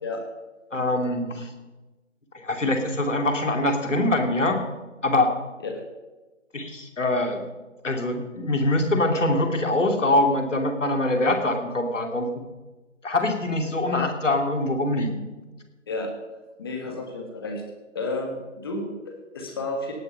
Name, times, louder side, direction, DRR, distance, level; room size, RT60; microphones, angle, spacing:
voice 1, 0.7-1.5 2.3-4.6 5.0-5.3 6.5-7.4 7.8-12.3 13.0-15.2 16.8-16.9, left 1 dB, 70° left, 4 dB, 2.6 m, -24 dB
voice 2, 16.6-17.6 17.9-19.9, left 2 dB, 20° left, 3 dB, 1.4 m, -31 dB
18.0 x 6.9 x 5.6 m, 1.1 s
figure-of-eight pair, 160°, 38 cm